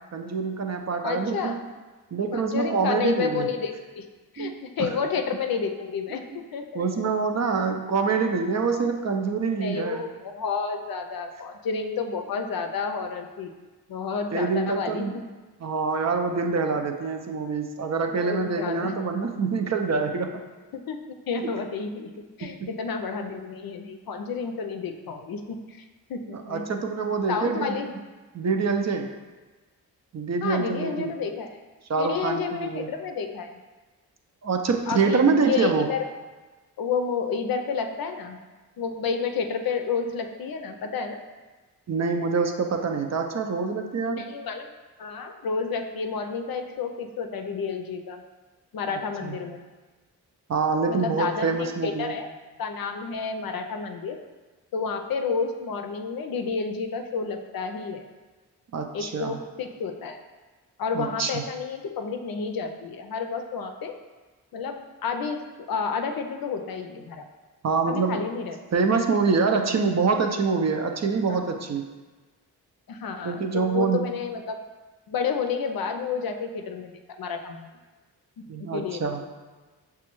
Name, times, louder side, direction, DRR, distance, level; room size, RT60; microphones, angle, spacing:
voice 1, 0.1-1.6 2.1-3.5 4.4-4.5 4.8-4.9 6.7-10.1 14.3-15.1 15.6-20.3 21.4-21.5 22.4-22.7 26.3-27.8 28.3-29.1 30.1-31.2 31.9-32.9 34.4-35.9 41.9-44.3 49.2-49.4 50.5-52.1 58.7-59.4 60.9-61.4 67.6-68.3 68.7-71.8 73.2-74.1 78.5-79.2, right 4 dB, 40° right, 4 dB, 0.5 m, -25 dB
voice 2, 1.0-1.6 2.3-4.1 4.3-7.1 9.6-13.6 13.9-15.2 18.1-19.1 20.7-22.1 22.4-25.8 26.1-26.6 27.3-27.9 30.4-31.6 32.0-33.5 34.9-36.0 36.8-38.4 38.8-41.2 44.1-44.7 45.0-48.2 48.7-49.6 50.9-52.3 52.6-54.2 54.7-58.0 58.9-60.2 60.8-64.0 64.5-64.8 65.0-65.4 65.7-67.3 67.9-68.6 71.3-71.4 72.9-74.6 75.1-76.9 77.2-77.7 78.7-79.1, left 5 dB, 60° left, 5 dB, 0.5 m, -30 dB
5.9 x 2.3 x 3.0 m, 1.3 s
supercardioid pair, 40°, 40 cm